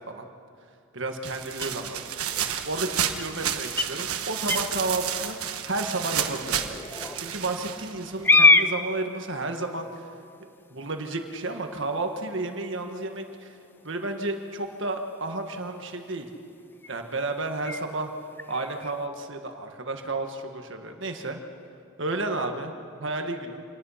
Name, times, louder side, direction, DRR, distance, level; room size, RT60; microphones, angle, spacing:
voice 1, 0.9-2.0 2.7-10.0 10.7-13.6 13.8-16.3 16.9-18.1 18.5-21.4 22.0-22.7 23.0-23.6, right 2 dB, 55° right, 4 dB, 1.6 m, -32 dB
sound 1, 1.3-8.3, right 9 dB, 90° right, 1.3 m, -31 dB
sound 2, 1.5-19.1, left 3 dB, 10° left, 0.4 m, -30 dB
27.5 x 19.5 x 5.8 m, 2.5 s
head